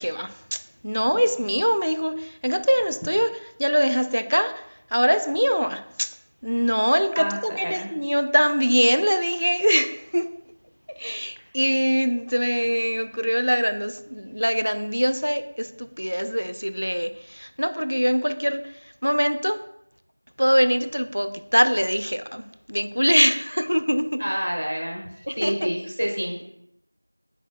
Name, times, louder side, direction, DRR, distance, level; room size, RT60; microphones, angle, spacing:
voice 1, 0.0-3.3 3.6-4.6 4.9-6.1 6.4-10.3 11.0-19.6 20.4-24.2 25.3-25.7, equal, 90° right, 10 dB, 0.3 m, -23 dB
voice 2, 7.2-7.9 24.2-26.4, equal, 35° right, -1 dB, 0.7 m, -28 dB
4.3 x 3.8 x 2.3 m, 0.78 s
figure-of-eight pair, 180°, 0 cm